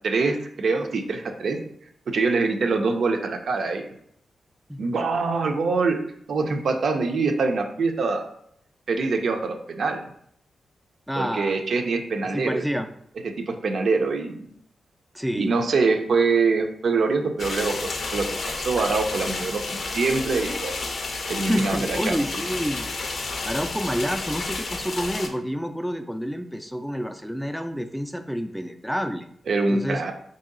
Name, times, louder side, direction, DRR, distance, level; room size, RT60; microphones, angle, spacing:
voice 1, 0.0-1.6 2.1-3.9 4.8-6.0 6.3-8.3 8.9-10.1 11.2-12.6 13.5-14.5 15.4-17.8 18.1-20.8 21.3-22.2 29.5-30.1, right 4 dB, 70° right, 4 dB, 0.5 m, -24 dB
voice 2, 11.1-11.6 12.2-12.9 15.1-15.6 21.4-23.0 23.4-29.3 29.7-30.0, equal, ahead, 6 dB, 0.3 m, -29 dB
sound 1, 17.4-25.3, left 3 dB, 65° left, 0.5 m, -31 dB
3.0 x 2.7 x 3.8 m, 0.69 s
cardioid pair, 65°, 0 cm